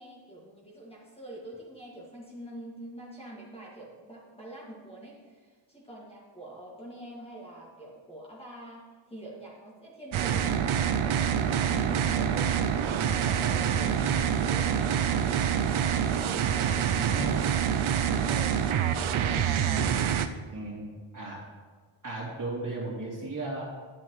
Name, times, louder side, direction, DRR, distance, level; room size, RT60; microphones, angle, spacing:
voice 1, 0.0-8.8 9.1-12.7 13.1-14.0 14.4-15.0 17.9-18.6, right 1 dB, 10° left, -5 dB, 2.0 m, -45 dB
sound 1, 10.1-20.3, right 8 dB, 85° right, 0.6 m, -26 dB
voice 2, 13.8-14.1 16.9-17.3 19.3-19.5 20.5-21.4 22.0-23.6, right 2 dB, 40° right, -5 dB, 2.9 m, -36 dB
10.0 x 7.6 x 3.2 m, 1.5 s
wide cardioid pair, 85°, 47 cm